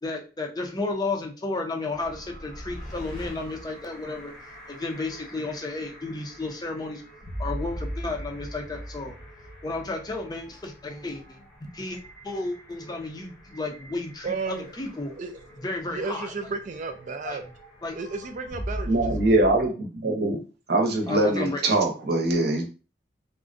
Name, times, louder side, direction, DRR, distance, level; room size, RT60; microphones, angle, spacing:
voice 1, 0.0-4.3 4.7-7.0 7.4-9.1 9.6-11.4 11.7-12.0 12.2-15.1 15.6-16.3 17.2-17.4 17.8-17.9 21.1-21.9, left 3 dB, 20° left, 2 dB, 0.5 m, -32 dB
sound 1, 1.9-19.7, equal, 85° left, 1.3 m, -40 dB
voice 2, 14.2-14.7 15.2-15.3 15.9-17.4 17.9-19.4, right 4 dB, 45° right, 6 dB, 0.4 m, -33 dB
voice 3, 18.9-20.4 20.7-22.7, right 2 dB, 60° right, 2 dB, 0.7 m, -23 dB
3.6 x 2.1 x 2.5 m, 0.33 s
head